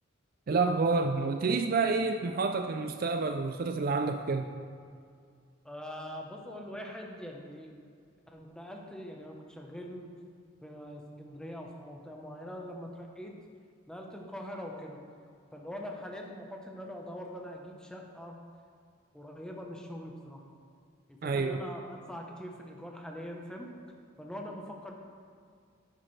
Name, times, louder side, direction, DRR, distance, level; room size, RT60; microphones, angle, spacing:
voice 1, 0.5-4.5 21.2-21.6, right 4 dB, 45° right, 7 dB, 0.4 m, -28 dB
voice 2, 5.6-7.7 8.3-10.2 10.6-13.3 13.9-15.0 15.5-18.4 19.1-20.4 21.1-23.7 24.2-24.9, equal, 5° left, 0 dB, 0.9 m, -43 dB
10.5 x 10.0 x 3.3 m, 2.2 s
head